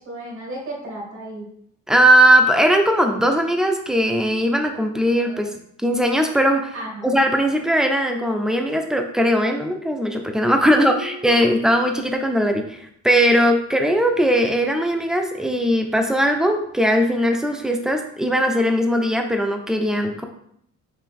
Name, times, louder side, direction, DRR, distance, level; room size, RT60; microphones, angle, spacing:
voice 1, 0.1-1.5 6.7-7.1 10.7-11.8, equal, 70° right, -2 dB, 1.8 m, -35 dB
voice 2, 1.9-5.5 5.8-6.7 7.0-20.3, equal, ahead, 3 dB, 0.6 m, -19 dB
4.7 x 2.9 x 3.6 m, 0.70 s
cardioid pair, 90°, 30 cm